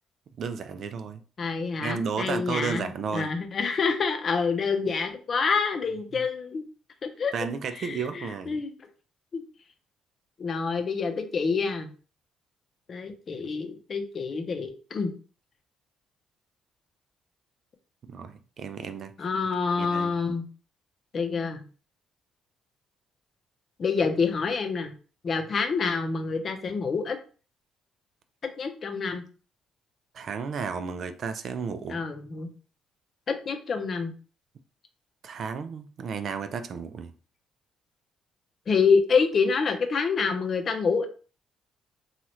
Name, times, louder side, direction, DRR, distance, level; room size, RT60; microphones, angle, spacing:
voice 1, 0.4-1.2 1.8-3.3 6.1-6.2 7.3-8.6 18.1-19.1 19.8-20.1 30.1-32.0 35.2-37.1, right 6 dB, 60° right, 0.3 m, -33 dB
voice 2, 1.4-6.6 7.0-7.3 7.8-8.7 9.3-9.4 10.4-11.9 12.9-15.1 19.2-20.4 21.1-21.6 23.8-24.9 25.2-27.2 28.4-29.2 31.9-32.5 33.3-34.1 38.7-41.1, left 5 dB, 50° left, 0.6 m, -27 dB
3.0 x 2.4 x 2.9 m
hypercardioid pair, 50°, 0 cm